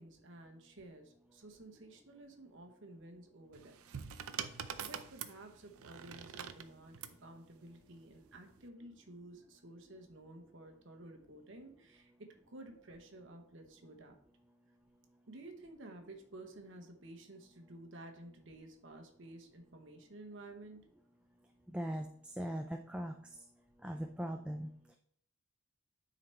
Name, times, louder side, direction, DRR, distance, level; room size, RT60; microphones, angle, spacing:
voice 1, 0.0-3.8 4.8-14.2 15.3-20.9, right 2 dB, 55° right, 4 dB, 1.0 m, -53 dB
sound 1, 3.5-7.2 8.3-8.6, right 8 dB, 80° right, 0.5 m, -44 dB
voice 2, 21.7-23.5 23.8-25.0, equal, 5° right, 3 dB, 0.3 m, -40 dB
9.5 x 4.0 x 4.4 m, 0.66 s
head